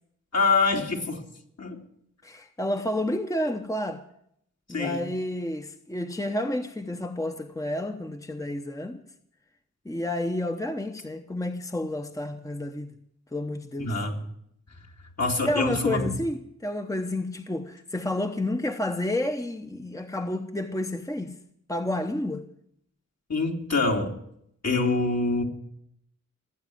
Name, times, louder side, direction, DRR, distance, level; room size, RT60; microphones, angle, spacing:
voice 1, 0.3-1.2 1.6-1.8 4.7-5.0 13.8-14.2 15.2-16.1 23.3-24.1 24.6-25.4, left 3 dB, 60° left, 2.9 m, -25 dB
voice 2, 2.2-4.0 4.7-9.0 9.8-13.0 13.3-13.9 15.4-21.4 21.7-22.5, left 1 dB, 10° left, 0.9 m, -30 dB
18.0 x 8.5 x 9.2 m
wide cardioid pair, 70°, 30 cm